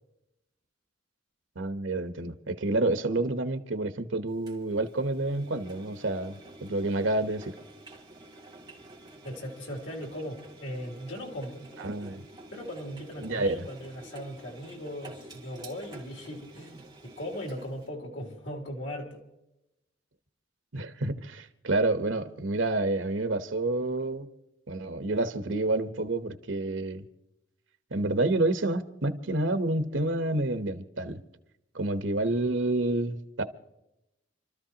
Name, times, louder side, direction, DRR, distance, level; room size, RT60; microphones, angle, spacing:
voice 1, 1.6-7.5 11.8-12.2 13.2-13.7 20.7-24.3 24.7-27.0 27.9-31.2 31.7-33.4, right 2 dB, 90° right, 1.1 m, -29 dB
Engine, 4.5-17.9, right 1 dB, 25° right, 2.5 m, -49 dB
voice 2, 9.2-11.7 12.5-19.2, equal, 85° left, 3.0 m, -38 dB
28.5 x 13.5 x 2.9 m
head